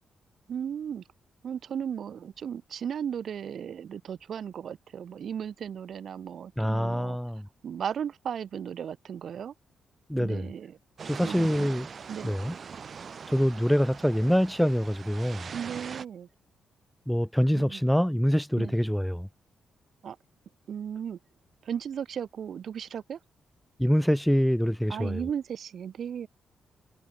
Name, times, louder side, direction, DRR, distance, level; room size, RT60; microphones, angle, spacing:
voice 1, 0.5-1.0 1.4-7.2 7.6-9.5 10.2-10.8 11.2-11.7 12.1-12.4 15.5-16.3 17.5-17.8 18.6-18.7 20.0-20.2 20.7-21.2 21.6-23.2 24.9-26.3, right 8 dB, 60° right, 1.8 m, -36 dB
voice 2, 6.6-7.4 10.1-10.4 11.1-11.9 12.2-12.5 13.3-15.4 17.1-19.3 23.8-25.2, equal, ahead, 0.3 m, -25 dB
sound 1, 11.0-16.0, right 6 dB, 45° right, 0.7 m, -41 dB
cardioid pair, 120°, 0 cm